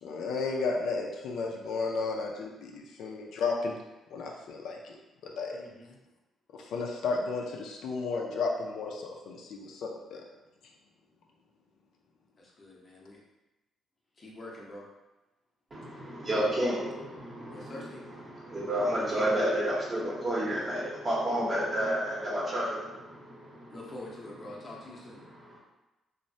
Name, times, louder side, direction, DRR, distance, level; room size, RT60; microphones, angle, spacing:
voice 1, 0.0-3.7 4.1-5.0 5.2-5.6 6.6-10.2, left 4 dB, 75° left, 0 dB, 0.4 m, -33 dB
voice 2, 5.5-6.0 12.6-13.2 14.2-14.9 17.5-18.0 23.7-25.2, left 1 dB, 40° left, -3 dB, 0.7 m, -45 dB
voice 3, 15.7-24.0 24.4-24.6 25.4-25.6, right 1 dB, 35° right, -5 dB, 0.9 m, -31 dB
3.0 x 2.1 x 2.6 m, 1.1 s
cardioid pair, 90°, 0 cm